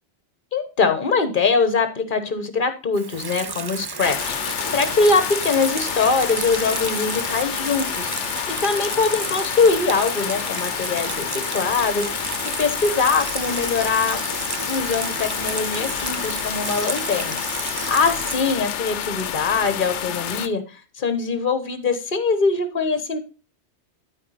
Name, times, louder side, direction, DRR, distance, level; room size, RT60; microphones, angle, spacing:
voice 1, 0.5-8.1 8.5-12.1 12.6-14.2 14.7-17.4 17.9-20.6 21.0-23.2, left 4 dB, 45° left, 9 dB, 1.3 m, -22 dB
Water tap faucet / Sink (filling or washing), 2.9-19.7, right 4 dB, 40° right, 0.3 m, -32 dB
sound 1, 4.0-20.5, left 9 dB, 80° left, 1.0 m, -29 dB
12.0 x 4.6 x 4.2 m, 0.32 s
omnidirectional pair, 1.2 m